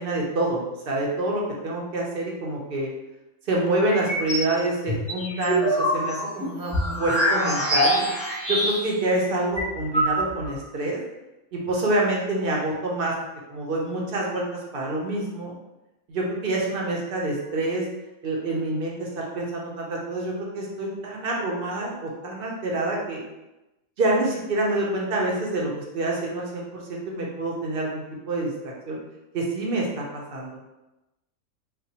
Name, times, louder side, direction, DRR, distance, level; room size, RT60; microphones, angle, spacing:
voice 1, 0.0-2.9 3.5-8.1 8.5-11.0 11.5-13.1 13.5-14.4 14.7-15.5 16.1-17.8 18.2-23.2 24.0-29.0 29.3-30.6, right 2 dB, 55° right, -2 dB, 0.7 m, -27 dB
sound 1, 3.9-4.5 4.9-9.0 9.3-9.4 9.6-10.5, equal, 10° left, 0.3 m, -24 dB
3.8 x 2.1 x 2.8 m, 1.0 s
omnidirectional pair, 1.5 m